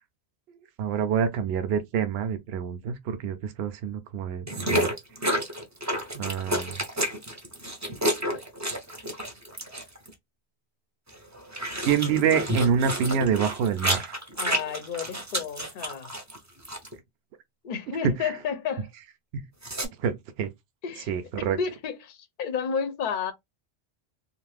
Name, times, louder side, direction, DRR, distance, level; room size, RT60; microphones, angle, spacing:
voice 1, 0.8-4.9 6.1-6.8 11.8-14.2 18.0-18.3 19.3-19.4 20.0-20.5 21.1-21.6, right 7 dB, 70° right, 0.8 m, -26 dB
sound 1, 4.5-10.1 11.1-16.4 16.7-16.9 19.6-19.9, equal, 20° right, 0.6 m, -30 dB
voice 2, 14.4-16.1 17.6-18.9 20.8-21.1 21.4-23.3, left 6 dB, 55° left, 0.7 m, -31 dB
2.5 x 2.5 x 3.3 m
omnidirectional pair, 1.1 m